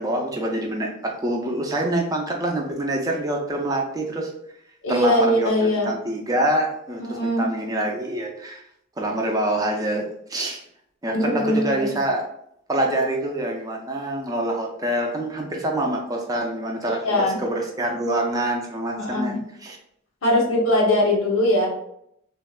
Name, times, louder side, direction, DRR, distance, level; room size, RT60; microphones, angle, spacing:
voice 1, 0.0-4.3 4.9-8.6 9.0-10.0 10.3-10.6 11.0-12.2 12.7-19.8, right 1 dB, 20° right, 1 dB, 0.4 m, -26 dB
voice 2, 4.8-5.9 7.1-7.5 11.1-11.9 16.9-17.4 19.0-19.4 20.2-21.7, left 1 dB, 90° left, -1 dB, 0.9 m, -21 dB
3.4 x 2.1 x 2.3 m, 0.73 s
head